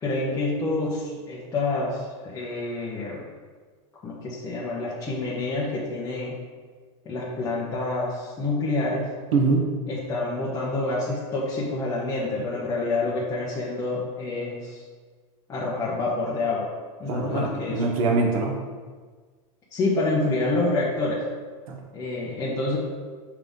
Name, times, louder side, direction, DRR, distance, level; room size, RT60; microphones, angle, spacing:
voice 1, 0.0-3.2 4.0-6.4 7.0-9.1 9.9-14.8 15.5-16.7 17.0-17.8 19.7-21.2 21.9-22.8, left 2 dB, 20° left, -7 dB, 1.0 m, -27 dB
voice 2, 9.3-9.7 17.1-18.6 21.7-21.8, right 3 dB, 90° right, 1 dB, 1.3 m, -23 dB
5.8 x 3.6 x 5.5 m, 1.5 s
supercardioid pair, 145°, 17 cm